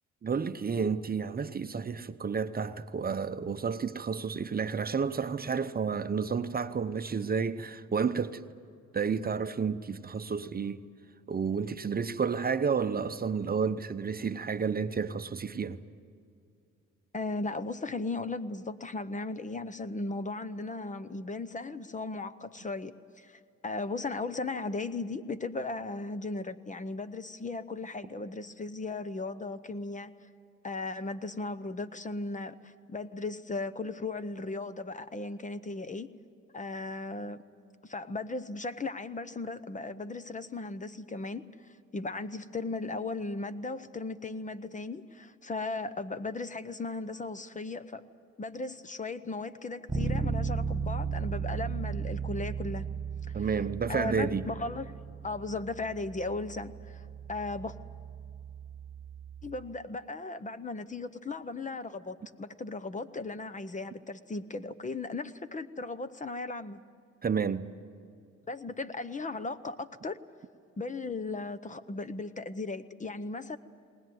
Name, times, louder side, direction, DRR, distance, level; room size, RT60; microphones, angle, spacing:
voice 1, 0.2-8.4 8.9-10.8 11.3-15.8 53.3-54.5 67.2-67.7, right 6 dB, 30° right, 0.8 m, -31 dB
voice 2, 17.1-30.1 30.6-36.1 36.5-37.4 37.8-41.5 41.9-48.1 48.4-52.9 53.4-53.6 53.9-55.0 55.2-57.8 59.4-66.8 68.5-70.2 70.8-73.6, left 3 dB, 25° left, 0.8 m, -37 dB
Bass guitar, 49.9-59.7, right 5 dB, 15° right, 1.1 m, -36 dB
20.0 x 19.5 x 9.4 m
cardioid pair, 90°, 30 cm